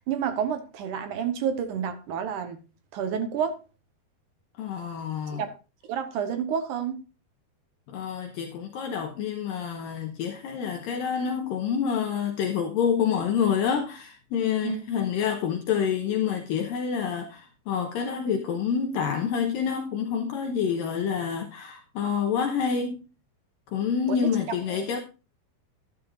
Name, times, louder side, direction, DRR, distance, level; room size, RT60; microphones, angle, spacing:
voice 1, 0.0-2.6 2.9-3.6 5.3-5.5 5.9-7.0 14.6-14.9 24.1-24.3 24.7-24.9, right 8 dB, 70° right, 2.1 m, -29 dB
voice 2, 4.5-5.4 7.9-23.1 23.7-25.0, left 7 dB, 70° left, 2.4 m, -27 dB
11.5 x 11.0 x 2.5 m
omnidirectional pair, 4.6 m